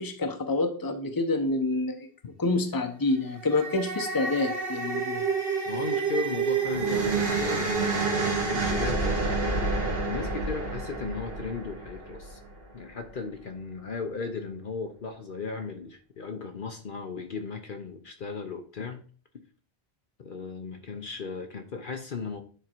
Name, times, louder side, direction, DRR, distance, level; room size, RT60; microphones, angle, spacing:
voice 1, 0.0-2.1 2.4-5.2, left 2 dB, 20° left, 6 dB, 0.9 m, -27 dB
sound 1, 3.3-12.6, right 4 dB, 60° right, 1.6 m, -29 dB
voice 2, 5.7-9.2 10.0-12.4 12.7-19.0 20.2-22.4, left 4 dB, 55° left, 6 dB, 0.9 m, -36 dB
9.9 x 3.7 x 4.5 m, 0.42 s
omnidirectional pair, 1.1 m